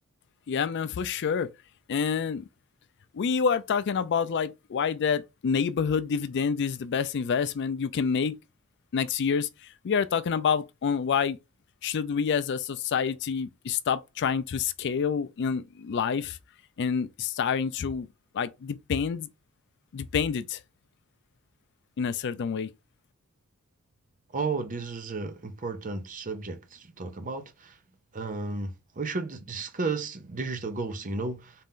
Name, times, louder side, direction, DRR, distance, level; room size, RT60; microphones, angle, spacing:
voice 1, 0.5-1.5 1.9-2.4 3.1-8.4 8.9-9.5 9.8-11.4 11.8-16.4 16.8-18.1 18.3-19.3 19.9-20.6 22.0-22.7, left 6 dB, 55° left, 0.4 m, -27 dB
voice 2, 24.3-27.7 28.1-31.5, right 3 dB, 35° right, 0.7 m, -33 dB
4.2 x 2.5 x 3.6 m
head